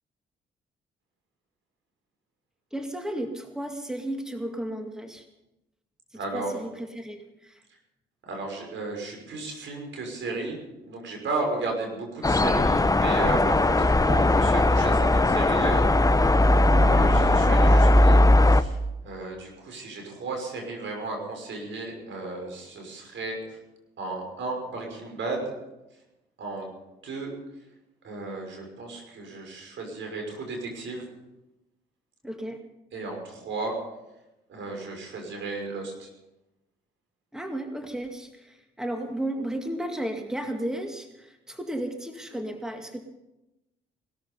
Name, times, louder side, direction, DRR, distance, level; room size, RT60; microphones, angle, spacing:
voice 1, 2.7-5.2 6.3-7.6 32.2-32.6 37.3-43.0, right 1 dB, 5° right, 4 dB, 2.2 m, -34 dB
voice 2, 6.1-6.6 8.2-10.6 10.8-16.1 16.7-23.6 24.0-25.6 26.4-26.7 27.0-27.3 28.0-31.1 32.9-33.7 34.5-36.1, right 3 dB, 65° right, 2 dB, 5.9 m, -34 dB
sound 1, 12.2-18.6, left 1 dB, 15° left, 0.9 m, -19 dB
19.0 x 13.5 x 5.5 m, 0.96 s
hypercardioid pair, 50°, 21 cm